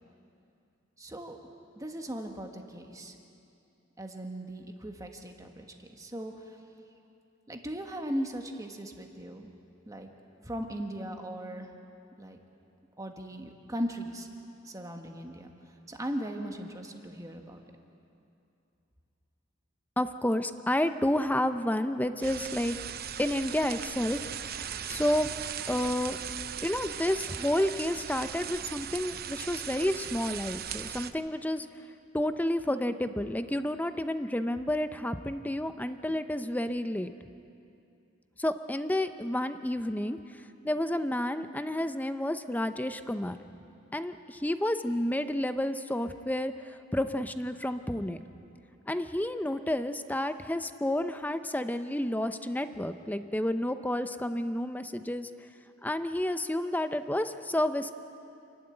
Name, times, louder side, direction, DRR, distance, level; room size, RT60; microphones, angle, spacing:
voice 1, 1.0-1.4 1.8-3.1 4.0-5.6 6.0-6.6 7.5-9.5 9.9-10.1 10.4-11.7 12.2-12.4 13.0-14.3 14.6-15.5 15.9-17.6, equal, 20° right, 3 dB, 1.5 m, -38 dB
voice 2, 20.0-22.8 23.2-24.2 24.9-25.3 25.7-26.2 26.6-31.7 32.1-37.1 38.4-40.2 40.6-43.4 43.9-46.5 46.9-48.2 48.9-55.3 55.8-57.9, left 1 dB, 10° left, 10 dB, 0.6 m, -30 dB
sound 1, 22.2-31.1, right 9 dB, 50° right, 0.7 m, -38 dB
28.0 x 12.0 x 8.9 m, 2.6 s
head